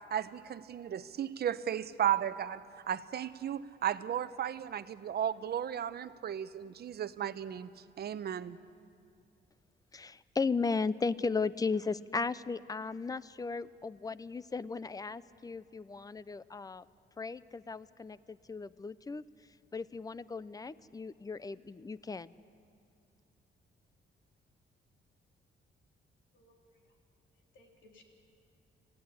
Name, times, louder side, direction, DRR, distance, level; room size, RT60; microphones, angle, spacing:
voice 1, 0.0-7.7 8.0-8.6, right 10 dB, 55° right, 13 dB, 0.8 m, -35 dB
voice 2, 9.9-16.9 17.2-19.2 19.7-22.3, left 4 dB, 20° left, 17 dB, 0.5 m, -36 dB
voice 3, 26.3-26.8 27.5-28.0, left 2 dB, 75° left, 1 dB, 3.7 m, -62 dB
27.0 x 16.0 x 9.8 m, 2.4 s
cardioid pair, 130°, 20 cm